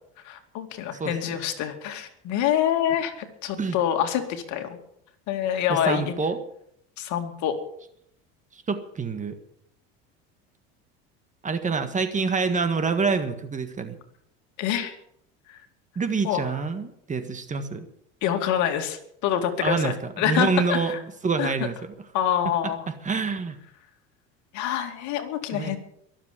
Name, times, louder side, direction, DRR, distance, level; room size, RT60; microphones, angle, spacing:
voice 1, 0.2-4.8 5.3-6.1 7.0-7.6 14.6-14.9 16.2-16.5 18.2-21.0 21.4-21.5 22.1-22.9 24.5-25.8, left 10 dB, 60° left, 6 dB, 2.5 m, -26 dB
voice 2, 5.7-6.4 8.5-9.4 11.4-14.0 15.9-17.8 19.6-20.9 21.2-21.9 22.9-23.6 25.5-25.8, right 4 dB, 25° right, 9 dB, 1.6 m, -26 dB
22.5 x 7.6 x 7.4 m, 0.73 s
supercardioid pair, 105°, 32 cm